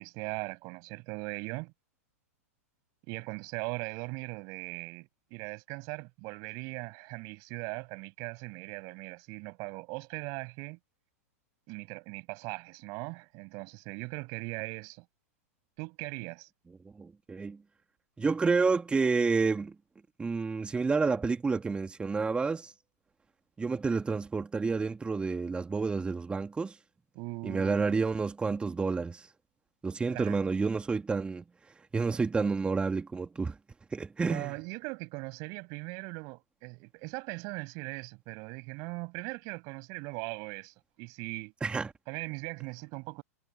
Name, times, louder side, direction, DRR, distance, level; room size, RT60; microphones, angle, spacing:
voice 1, 0.0-1.7 3.1-10.8 11.7-15.0 15.8-16.5 27.1-28.0 30.1-30.4 34.3-41.5 42.1-43.2, right 30 dB, 45° right, 6.8 m, -39 dB
voice 2, 17.0-17.6 18.2-19.7 20.2-22.7 23.6-26.7 27.4-29.2 29.8-31.4 31.9-33.5 33.9-34.5 41.6-41.9, right 4 dB, 10° right, 2.5 m, -29 dB
figure-of-eight pair, 105°, 8 cm